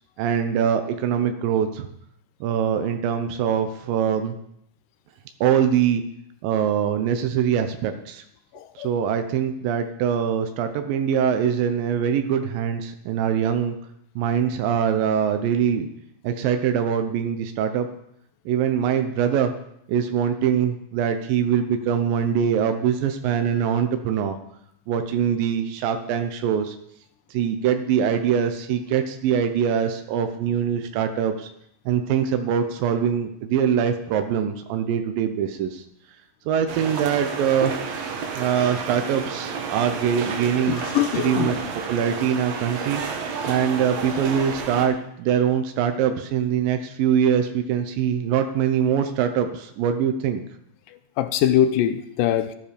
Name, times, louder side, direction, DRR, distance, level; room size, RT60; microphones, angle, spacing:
voice 1, 0.2-1.9 2.4-4.3 5.4-6.0 6.4-8.2 8.8-13.8 14.2-15.9 16.2-17.9 18.5-19.5 19.9-24.4 24.9-26.8 27.3-31.5 31.9-35.8 36.5-37.7 38.4-40.8 41.1-41.6 41.9-43.0 43.4-50.4, right 8 dB, 90° right, 7 dB, 2.6 m, -23 dB
voice 2, 8.5-8.9 40.7-41.5 51.2-52.5, left 11 dB, 85° left, 11 dB, 2.3 m, -22 dB
sound 1, 36.7-44.9, right 5 dB, 60° right, 2.2 m, -31 dB
13.0 x 9.9 x 5.1 m, 0.73 s
omnidirectional pair, 3.9 m